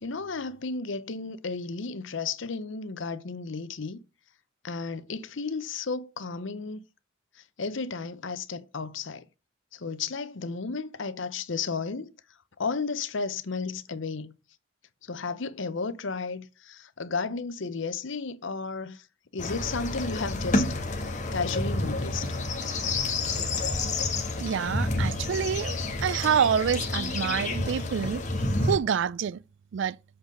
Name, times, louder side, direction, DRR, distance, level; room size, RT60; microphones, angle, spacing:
voice 1, 0.0-4.0 4.6-6.8 7.6-9.2 9.7-12.1 12.6-14.3 15.0-19.0 19.3-20.7 21.0-22.4, left 4 dB, 65° left, 0.7 m, -33 dB
sound 1, 19.4-28.8, left 2 dB, 35° left, 1.4 m, -29 dB
voice 2, 24.4-25.7 26.0-28.2 28.6-29.4 29.7-30.0, right 7 dB, 60° right, 0.3 m, -27 dB
7.8 x 3.9 x 6.5 m
head